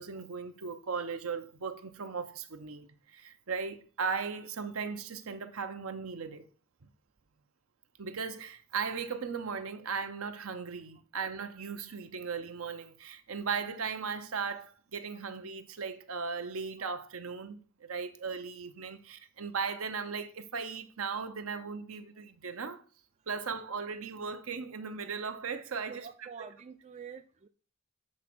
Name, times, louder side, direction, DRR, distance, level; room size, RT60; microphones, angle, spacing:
voice 1, 0.0-6.4 8.0-22.8 23.3-26.1 26.4-26.5, right 5 dB, 80° right, 0.8 m, -37 dB
voice 2, 25.9-27.5, right 6 dB, 30° right, 0.3 m, -47 dB
7.5 x 3.7 x 6.0 m
head